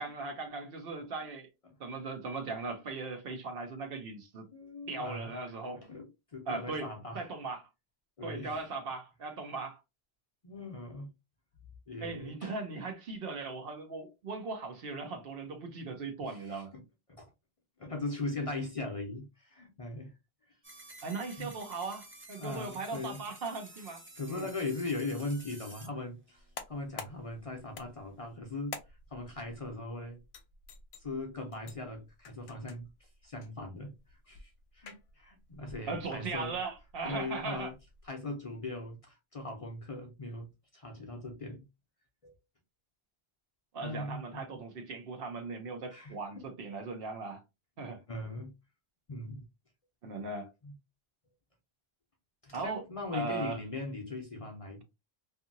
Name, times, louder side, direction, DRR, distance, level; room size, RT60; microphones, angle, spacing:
voice 1, 0.0-1.5 1.8-4.5 4.9-5.8 6.5-6.9 7.1-7.6 8.2-9.8 12.0-16.7 21.0-24.5 35.9-37.7 43.7-47.4 47.8-48.0 50.0-50.5 52.5-52.8 53.1-53.6, right 3 dB, 65° right, 0.9 m, -38 dB
voice 2, 4.5-5.4 5.7-7.3 8.2-8.7 10.4-11.1 11.9-12.5 16.1-16.8 17.2-17.3 17.8-20.1 21.4-21.5 22.4-23.2 24.1-28.8 29.1-30.2 31.0-36.6 37.0-37.7 38.0-41.6 42.2-42.3 43.8-44.5 45.9-46.5 48.1-48.5 49.1-49.4 50.6-50.7 52.4-54.8, left 2 dB, 40° left, 0.5 m, -40 dB
sound 1, 20.6-25.9, right 2 dB, 20° right, 0.3 m, -52 dB
sound 2, 26.3-38.1, left 5 dB, 80° left, 0.8 m, -51 dB
2.7 x 2.6 x 2.5 m
omnidirectional pair, 1.1 m